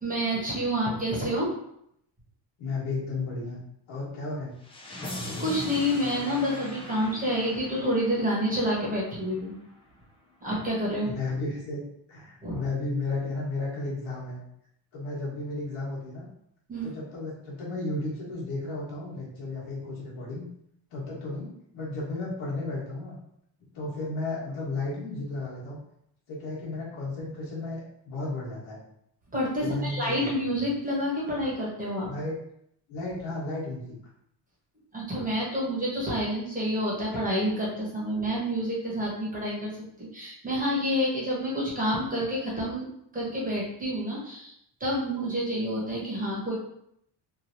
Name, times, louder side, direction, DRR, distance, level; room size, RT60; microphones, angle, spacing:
voice 1, 0.0-1.5 5.4-9.5 10.4-11.1 12.4-12.6 16.7-16.9 29.3-32.1 34.9-39.7 40.0-42.9 43.1-44.5 44.8-46.5, equal, 15° right, -6 dB, 1.0 m, -28 dB
voice 2, 2.6-3.6 3.9-4.6 11.0-11.8 12.1-14.4 14.9-16.2 16.8-20.5 20.9-21.5 21.7-23.2 23.7-25.8 26.3-28.8 29.6-30.3 32.1-32.3 32.9-33.8, left 2 dB, 85° left, -5 dB, 1.4 m, -33 dB
sound 1, 4.6-9.6, left 2 dB, 15° left, 0.4 m, -40 dB
3.1 x 2.6 x 2.6 m, 0.74 s
cardioid pair, 125°, 47 cm